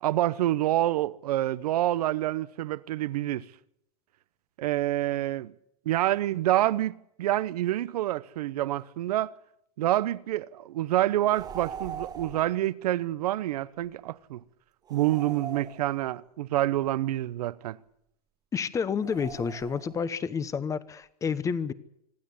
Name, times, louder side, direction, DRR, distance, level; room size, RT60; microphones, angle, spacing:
voice 1, 0.0-3.5 4.6-5.5 5.9-9.3 9.8-14.4 14.9-17.8, right 14 dB, 85° right, 0.9 m, -27 dB
sound 1, 11.3-12.6 14.9-16.3 19.0-20.1, right 8 dB, 20° right, 1.1 m, -41 dB
voice 2, 18.5-21.7, left 6 dB, 15° left, 1.0 m, -30 dB
25.5 x 12.0 x 10.0 m
supercardioid pair, 150°, 19 cm